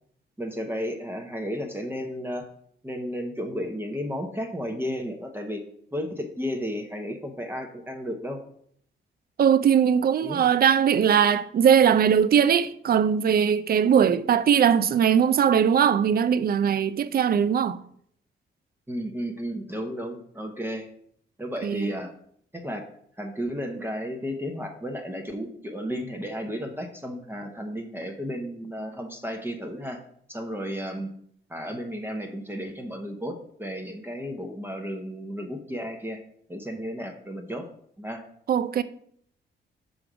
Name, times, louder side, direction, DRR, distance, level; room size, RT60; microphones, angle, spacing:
voice 1, 0.4-2.5 2.8-5.6 5.9-8.4 10.2-10.4 18.9-20.9 21.4-22.1 22.5-22.8 23.2-30.0 30.3-31.1 31.5-36.2 36.5-37.7 38.0-38.2, equal, 10° right, 0.8 m, -33 dB
voice 2, 9.4-17.8 21.6-21.9 38.5-38.8, right 8 dB, 50° right, 0.5 m, -20 dB
6.1 x 5.2 x 4.9 m
cardioid pair, 105°, 20 cm